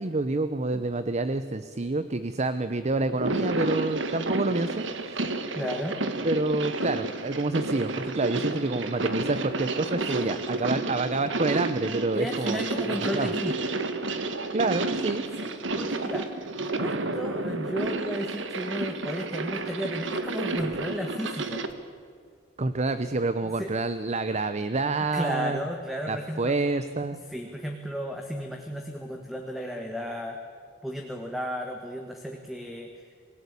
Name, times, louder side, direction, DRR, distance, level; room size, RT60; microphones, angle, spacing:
voice 1, 0.0-5.3 6.2-12.6 13.1-13.3 14.5-15.2 15.8-15.9 22.6-25.6 26.1-27.2, right 2 dB, 35° right, 11 dB, 0.8 m, -28 dB
sound 1, 3.1-21.7, right 2 dB, 70° right, 1.8 m, -31 dB
voice 2, 5.6-6.0 10.1-10.3 10.6-10.8 12.1-13.7 15.4-16.3 16.6-21.6 23.4-23.7 25.1-26.6 27.3-30.4 30.8-33.1, equal, ahead, 3 dB, 1.8 m, -34 dB
27.5 x 17.5 x 8.4 m, 2.1 s
head